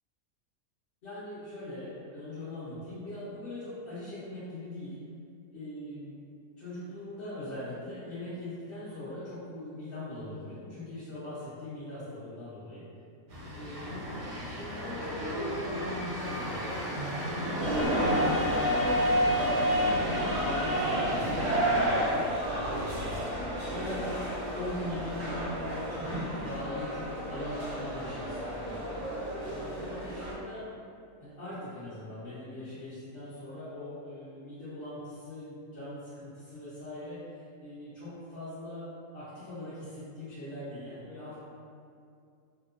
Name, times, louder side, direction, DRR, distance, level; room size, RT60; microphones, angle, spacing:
voice 1, 1.0-5.0 5.5-6.2 6.6-12.8 13.5-14.1 14.4-18.6 19.2-24.2 24.5-28.9 29.4-30.6 31.2-38.8 39.1-41.4, left 1 dB, 50° left, -14 dB, 0.7 m, -41 dB
sound 1, 13.3-21.9, equal, 75° right, 1.1 m, -34 dB
sound 2, 17.6-30.3, equal, 45° right, 0.5 m, -30 dB
2.8 x 2.0 x 2.4 m, 2.4 s
omnidirectional pair, 1.5 m